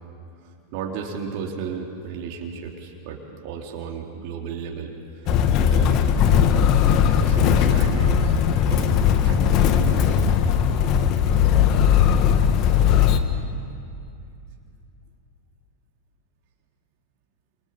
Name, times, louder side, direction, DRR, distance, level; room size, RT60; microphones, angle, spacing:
voice 1, 0.7-5.3 5.7-6.0 7.1-8.4 8.7-10.3, right 6 dB, 45° right, 1 dB, 3.4 m, -34 dB
Motor vehicle (road), 5.3-13.2, left 8 dB, 40° left, 1.6 m, -18 dB
28.5 x 28.0 x 7.3 m, 2.5 s
figure-of-eight pair, 90°, 0 cm